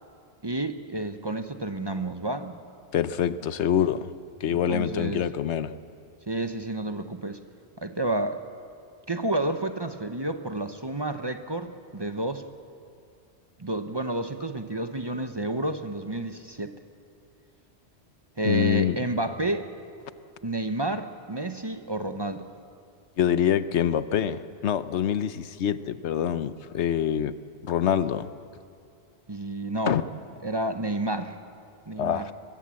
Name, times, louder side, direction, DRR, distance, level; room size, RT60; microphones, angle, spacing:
voice 1, 0.4-2.6 4.5-5.3 6.3-7.4 7.8-8.4 9.1-12.4 13.6-16.7 18.4-19.7 20.4-22.5 29.3-30.0 30.4-31.3 31.9-32.2, right 2 dB, 25° right, 8 dB, 0.8 m, -30 dB
voice 2, 2.9-4.1 4.4-5.7 18.4-19.0 23.2-27.4 27.6-28.3 29.9-30.0 32.0-32.3, left 9 dB, 85° left, 13 dB, 1.0 m, -25 dB
22.5 x 21.0 x 7.6 m, 2.4 s
omnidirectional pair, 1.1 m